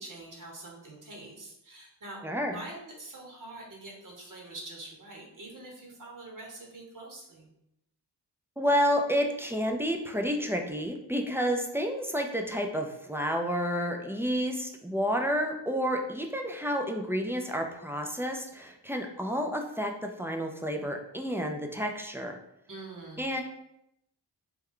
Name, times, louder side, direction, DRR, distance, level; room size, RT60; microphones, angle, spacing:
voice 1, 0.0-2.2 2.5-7.5 22.7-23.3, right 2 dB, 50° right, -2 dB, 1.0 m, -45 dB
voice 2, 2.2-2.6 8.6-22.3 23.2-23.4, equal, 5° right, 2 dB, 0.3 m, -30 dB
3.3 x 2.2 x 3.6 m, 0.81 s
cardioid pair, 70°, 41 cm